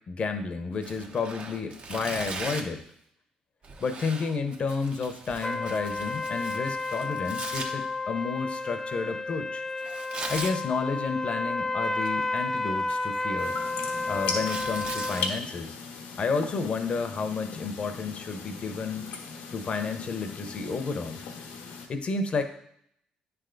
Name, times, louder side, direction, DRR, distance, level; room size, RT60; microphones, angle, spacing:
voice 1, 0.1-2.8 3.8-9.6 10.3-13.6 14.1-15.8 16.2-19.1 19.5-21.2 21.9-22.4, left 4 dB, 45° left, 8 dB, 0.8 m, -31 dB
Tearing, 0.8-2.8 3.6-7.7 9.8-10.6 11.8-12.4 12.8-15.2, right 3 dB, 45° right, 0.9 m, -39 dB
sound 1, 5.4-15.3, left 3 dB, 15° left, 0.3 m, -31 dB
sound 2, 13.4-21.9, left 5 dB, 90° left, 1.0 m, -38 dB
9.2 x 3.4 x 3.9 m, 0.70 s
cardioid pair, 80°, 3 cm